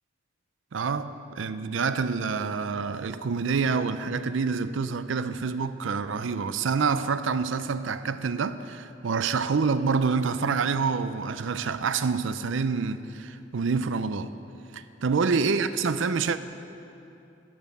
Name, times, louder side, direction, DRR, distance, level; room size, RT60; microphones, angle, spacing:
voice 1, 0.7-14.3 14.7-16.4, right 5 dB, 75° right, 0.5 m, -27 dB
11.5 x 10.5 x 6.8 m
head